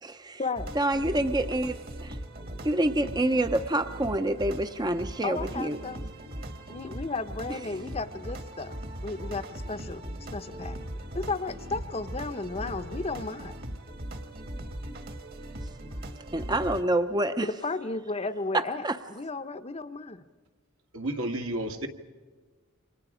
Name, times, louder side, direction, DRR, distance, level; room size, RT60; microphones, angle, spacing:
voice 1, 0.0-0.4 0.7-2.2 2.6-5.8 7.5-7.6 16.3-17.5 18.5-19.0, right 1 dB, 20° right, 0.6 m, -27 dB
sound 1, 0.6-16.8, right 1 dB, 45° right, 1.6 m, -39 dB
voice 2, 5.2-6.0 6.7-8.8 9.0-10.0 10.3-10.8 11.1-13.6 17.4-20.2, left 3 dB, 30° left, 0.7 m, -34 dB
voice 3, 20.9-21.9, right 1 dB, 80° right, 2.0 m, -31 dB
29.0 x 25.5 x 5.0 m
head